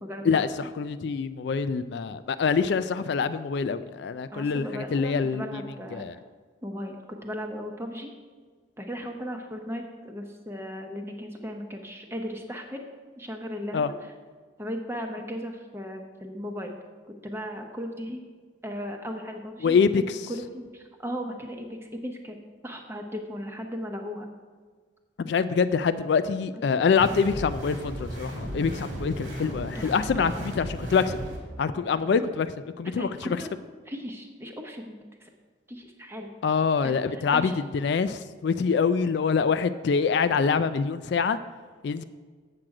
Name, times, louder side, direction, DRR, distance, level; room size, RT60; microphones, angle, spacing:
voice 1, 0.0-0.7 4.3-6.2 6.6-8.1 8.8-12.8 13.2-14.1 14.6-16.7 17.2-18.2 18.6-19.9 20.3-22.4 22.6-24.3 27.0-27.1 29.7-30.5 33.0-33.5 33.9-34.9 35.2-35.3 35.7-36.3 36.8-37.5, equal, 15° right, 3 dB, 0.8 m, -37 dB
voice 2, 0.8-5.6 5.9-6.1 13.7-13.9 19.6-20.2 25.2-31.2 31.6-32.5 32.8-33.3 36.4-41.4 41.8-42.0, left 5 dB, 60° left, 12 dB, 0.3 m, -25 dB
sound 1, 27.0-31.4, equal, 90° right, 2.4 m, -35 dB
7.7 x 7.6 x 4.8 m, 1.5 s
head